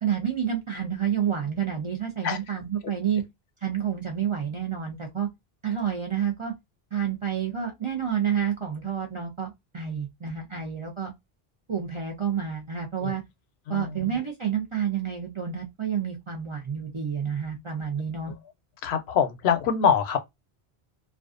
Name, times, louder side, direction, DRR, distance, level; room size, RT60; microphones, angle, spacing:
voice 1, 0.0-3.2 3.6-5.3 5.6-6.5 6.9-11.1 11.7-13.2 13.7-18.3, right 8 dB, 45° right, 0.4 m, -29 dB
voice 2, 13.7-14.0 18.8-20.2, left 7 dB, 80° left, 0.8 m, -24 dB
2.4 x 2.2 x 2.4 m
omnidirectional pair, 1.1 m